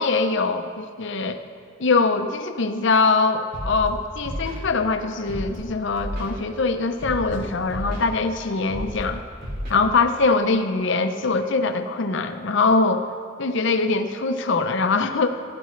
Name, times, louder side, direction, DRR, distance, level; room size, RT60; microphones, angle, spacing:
voice 1, 0.0-1.4 1.8-9.2 9.7-13.0 13.4-15.3, left 3 dB, 65° left, 8 dB, 0.7 m, -22 dB
Scratching (performance technique), 3.5-3.9 4.2-4.6 5.3-5.6 6.0-6.3 7.0-7.4 7.7-8.0 8.7-9.0 9.4-9.7, equal, 60° right, 3.2 m, -31 dB
15.0 x 12.5 x 3.2 m, 2.3 s
head